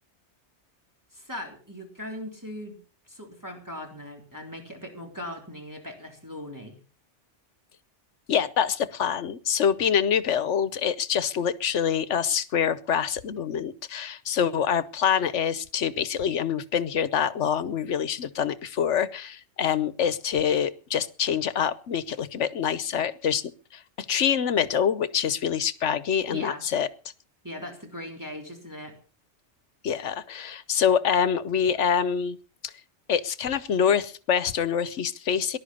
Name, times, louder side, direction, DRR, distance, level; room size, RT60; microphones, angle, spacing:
voice 1, 1.1-2.8 3.1-6.7 26.3-26.6 27.4-28.9, left 1 dB, 15° right, 1 dB, 3.5 m, -39 dB
voice 2, 8.3-26.9 29.8-32.4 32.6-32.7 33.1-35.6, left 8 dB, 85° left, 16 dB, 1.2 m, -25 dB
19.0 x 11.5 x 5.5 m, 0.38 s
omnidirectional pair, 1.2 m